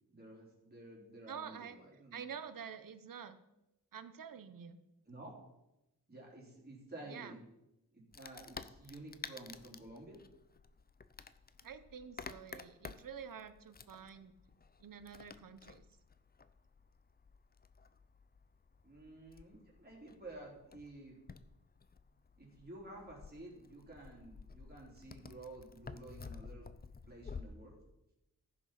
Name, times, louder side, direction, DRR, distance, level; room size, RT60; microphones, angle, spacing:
voice 1, 0.1-2.2 5.1-5.3 6.1-7.4 7.9-10.2 18.8-21.2 22.4-26.7 27.1-27.8, right 2 dB, 25° right, -4 dB, 4.0 m, -52 dB
voice 2, 1.3-1.8 2.1-3.4 3.9-4.8 7.0-7.3 11.6-14.3 14.8-15.8, right 7 dB, 60° right, 11 dB, 0.9 m, -48 dB
Wood, 8.1-27.4, left 5 dB, 25° left, 0.5 m, -52 dB
14.5 x 6.4 x 5.8 m, 0.91 s
wide cardioid pair, 140°, 37 cm